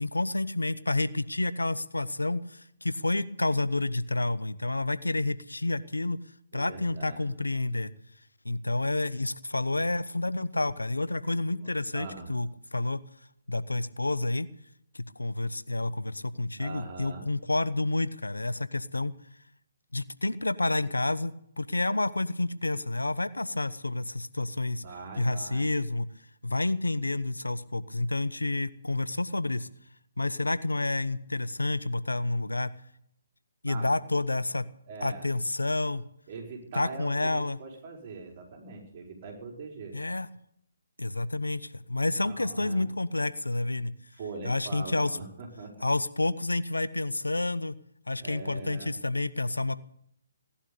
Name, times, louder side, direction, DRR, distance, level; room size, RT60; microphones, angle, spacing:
voice 1, 0.0-6.2 6.5-7.9 8.4-13.0 13.5-14.5 14.9-19.1 19.9-24.8 25.2-26.1 26.4-29.7 30.2-32.7 33.6-34.7 35.0-36.0 36.7-37.6 39.9-40.3 41.0-43.9 44.4-45.2 45.8-47.7 48.1-49.8, left 2 dB, 90° left, 15 dB, 1.0 m, -29 dB
voice 2, 6.5-7.3 11.3-12.3 16.6-17.3 24.8-25.7 33.6-33.9 34.9-35.3 36.3-40.0 42.2-42.9 44.1-45.7 48.1-48.9, right 3 dB, 40° right, 1 dB, 4.9 m, -42 dB
17.5 x 11.5 x 6.9 m, 0.73 s
figure-of-eight pair, 140°, 0 cm